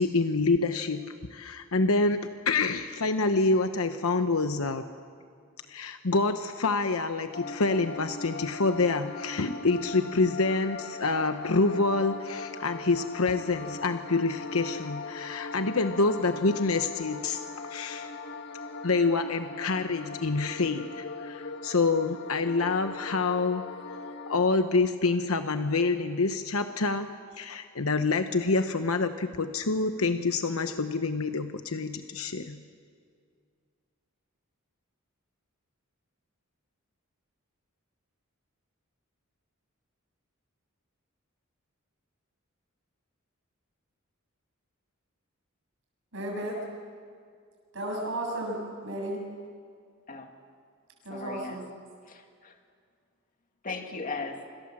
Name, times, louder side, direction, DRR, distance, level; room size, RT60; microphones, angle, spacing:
voice 1, 0.0-4.8 5.7-17.4 17.7-18.1 18.8-23.6 24.3-27.1 27.4-32.6, left 3 dB, 85° left, 8 dB, 1.0 m, -27 dB
sound 1, 7.3-24.5, left 4 dB, 55° left, 1.7 m, -40 dB
voice 2, 46.1-46.6 47.7-49.2 51.0-51.7, right 1 dB, 65° right, 0 dB, 7.8 m, -34 dB
voice 3, 51.1-51.6 52.1-52.6 53.6-54.4, left 3 dB, 40° left, 4 dB, 2.1 m, -37 dB
29.0 x 26.5 x 7.5 m, 2.2 s
head